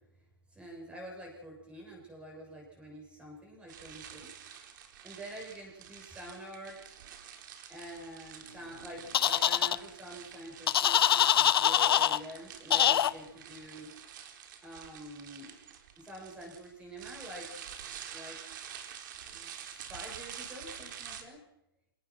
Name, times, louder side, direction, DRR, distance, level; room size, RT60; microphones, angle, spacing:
voice 1, 0.5-4.3 5.0-7.0 7.7-13.9 14.6-15.6 16.0-17.5 18.1-18.4 19.3-21.4, right 1 dB, 10° right, 0 dB, 8.0 m, -47 dB
sound 1, 3.7-21.2, right 9 dB, 50° right, 4.3 m, -48 dB
sound 2, 9.1-9.8 10.7-12.2 12.7-13.1, left 10 dB, 70° left, 1.0 m, -24 dB
26.5 x 18.0 x 6.2 m, 0.85 s
hypercardioid pair, 150°, 13 cm